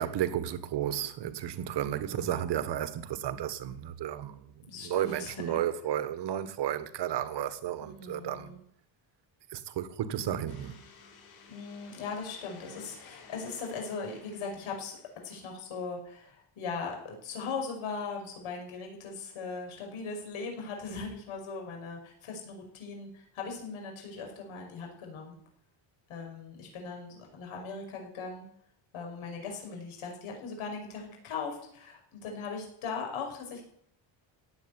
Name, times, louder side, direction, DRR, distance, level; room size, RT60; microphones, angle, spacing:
voice 1, 0.0-4.5 4.8-8.5 9.5-10.8, right 10 dB, 60° right, 1.5 m, -33 dB
voice 2, 2.0-2.5 4.7-5.6 7.8-8.6 11.5-15.0 15.2-25.3 26.1-28.4 28.9-33.6, left 4 dB, 80° left, 5.7 m, -39 dB
sound 1, 10.5-15.7, left 5 dB, 50° left, 5.3 m, -55 dB
17.0 x 8.4 x 9.7 m
cardioid pair, 170°, 48 cm